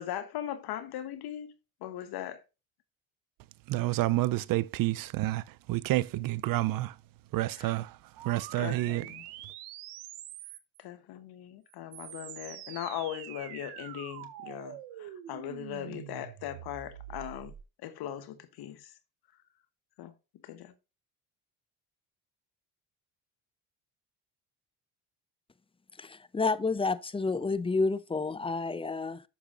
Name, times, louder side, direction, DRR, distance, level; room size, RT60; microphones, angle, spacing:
voice 1, 0.0-1.5 1.8-2.4 7.6-7.8 8.6-9.2 10.8-17.5 17.8-19.0 20.0-20.1 20.4-20.7, left 11 dB, 65° left, 1.0 m, -39 dB
voice 2, 3.7-7.0 7.3-9.1, right 17 dB, 55° right, 0.5 m, -29 dB
sound 1, 8.2-10.8 11.7-17.6, right 12 dB, 80° right, 1.1 m, -45 dB
voice 3, 26.0-29.2, left 3 dB, 15° left, 0.6 m, -30 dB
10.0 x 6.7 x 2.5 m
supercardioid pair, 75°, 40 cm